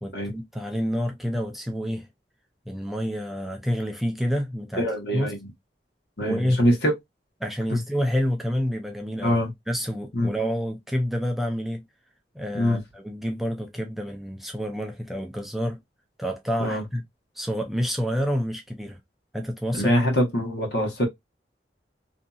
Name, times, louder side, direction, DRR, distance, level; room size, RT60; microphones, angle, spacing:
voice 1, 0.0-2.1 2.7-4.8 5.1-5.3 6.2-6.6 7.4-9.4 9.7-11.8 12.3-15.8 16.2-17.0 17.4-19.0 19.3-19.9, equal, ahead, 0.4 m, -28 dB
voice 2, 4.8-5.4 6.2-6.9 7.7-7.8 9.2-9.5 10.1-10.3 12.5-12.8 16.6-16.8 19.7-21.1, equal, 65° left, 1.1 m, -23 dB
2.7 x 2.6 x 2.3 m
head